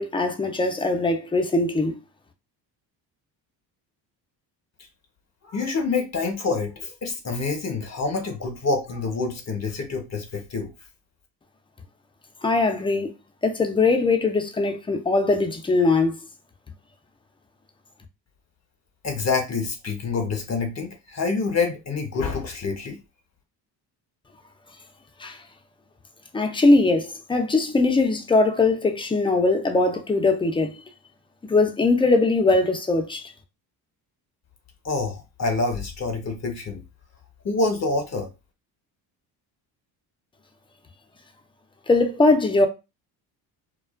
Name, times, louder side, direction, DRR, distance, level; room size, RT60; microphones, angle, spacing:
voice 1, 0.0-2.0 12.4-13.1 13.4-16.2 25.2-25.4 26.3-30.8 31.4-33.2 41.9-42.7, left 3 dB, 10° left, 0.4 m, -21 dB
voice 2, 5.4-10.7 19.0-23.0 34.8-36.8 37.4-38.3, left 4 dB, 35° left, 0.7 m, -27 dB
2.3 x 2.2 x 2.3 m
supercardioid pair, 65°, 48 cm